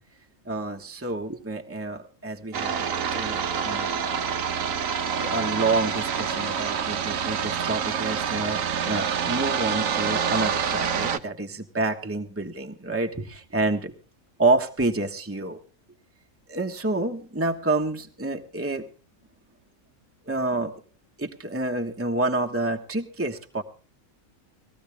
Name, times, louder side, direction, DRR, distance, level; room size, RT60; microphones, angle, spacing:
voice 1, 0.4-4.0 5.2-13.9 14.4-15.6 16.5-18.8 20.3-20.7 21.2-23.6, right 2 dB, 10° right, 4 dB, 1.3 m, -28 dB
sound 1, 2.5-11.2, right 7 dB, 75° right, 1.4 m, -27 dB
20.0 x 14.5 x 3.5 m, 0.38 s
omnidirectional pair, 1.4 m